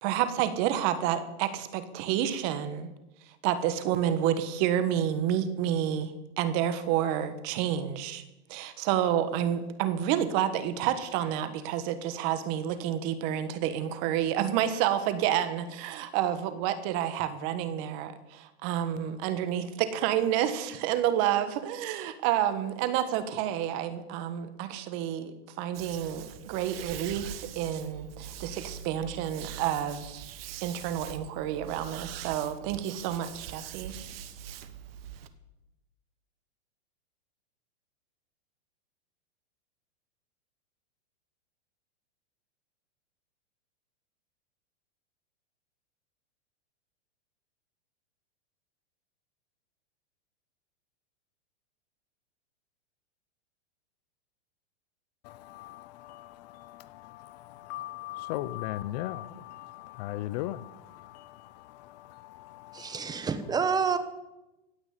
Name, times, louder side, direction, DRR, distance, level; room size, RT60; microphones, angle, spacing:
voice 1, 0.0-2.9 3.4-8.2 8.5-30.2 30.6-33.9, right 10 dB, 40° right, 1.5 m, -29 dB
sound 1, 25.7-35.3, right 10 dB, 60° right, 1.3 m, -43 dB
voice 2, 55.2-63.3, left 15 dB, 40° left, 0.5 m, -39 dB
voice 3, 62.7-64.0, right 6 dB, 10° right, 1.1 m, -28 dB
16.5 x 6.0 x 9.7 m
hypercardioid pair, 145°, 33 cm